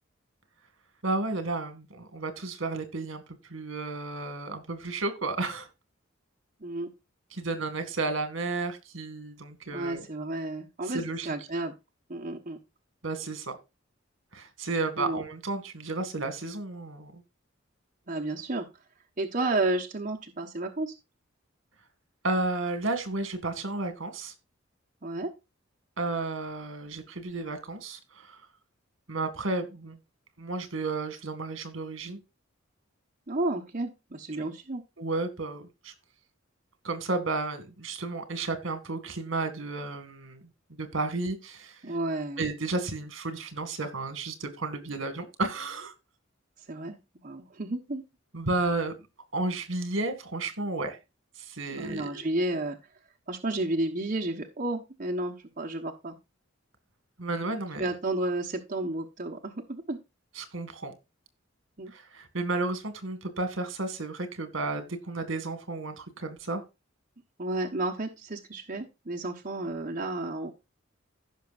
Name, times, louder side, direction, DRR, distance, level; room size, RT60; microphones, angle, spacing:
voice 1, 1.0-3.2 3.5-5.7 7.3-10.1 10.8-11.3 13.0-13.5 14.3-17.2 22.2-24.3 26.0-28.4 29.1-30.0 30.4-32.2 34.3-34.5 35.0-35.9 36.8-40.4 40.7-42.0 42.4-45.9 48.3-48.9 49.3-51.0 51.4-52.3 57.2-57.9 60.4-60.9 61.9-66.6, right 3 dB, 75° right, 9 dB, 2.1 m, -32 dB
voice 2, 9.7-11.7 12.1-12.6 15.0-15.2 18.1-18.7 19.2-20.9 25.0-25.3 33.3-34.8 41.8-42.4 46.7-47.0 47.2-48.0 51.7-52.8 53.3-56.2 57.8-60.0 61.8-61.9 67.4-70.5, right 2 dB, 40° right, 1 dB, 1.2 m, -32 dB
16.0 x 5.9 x 2.5 m, 0.26 s
head